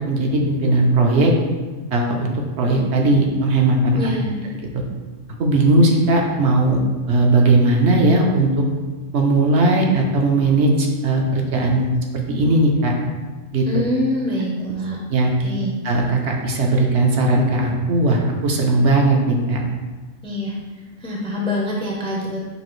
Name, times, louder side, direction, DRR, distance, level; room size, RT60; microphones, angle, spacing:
voice 1, 0.0-1.3 1.9-4.0 5.4-6.8 7.1-8.6 9.1-12.9 13.5-13.6 15.1-15.3 15.8-19.6, right 2 dB, 65° right, 0 dB, 0.8 m, -18 dB
voice 2, 3.9-4.4 13.6-15.0 15.4-15.7 20.2-22.4, left 1 dB, 5° left, -3 dB, 0.4 m, -25 dB
6.5 x 2.4 x 3.1 m, 1.3 s
omnidirectional pair, 1.3 m